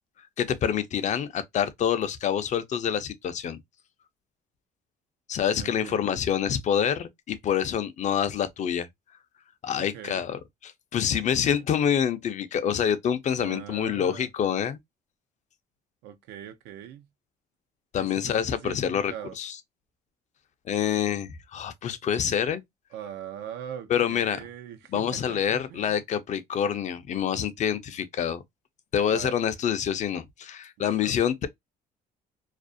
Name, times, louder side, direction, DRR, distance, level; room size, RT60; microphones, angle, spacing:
voice 1, 0.4-3.6 5.3-8.9 9.6-14.8 17.9-19.6 20.7-22.6 23.9-24.4 24.9-28.4 28.9-31.5, left 8 dB, 45° left, 0.4 m, -27 dB
voice 2, 5.5-6.1 9.7-10.2 13.4-14.3 16.0-17.1 18.0-19.4 22.9-26.0 29.1-29.3 30.8-31.1, right 10 dB, 85° right, 0.5 m, -41 dB
2.4 x 2.0 x 2.5 m
cardioid pair, 110°, 17 cm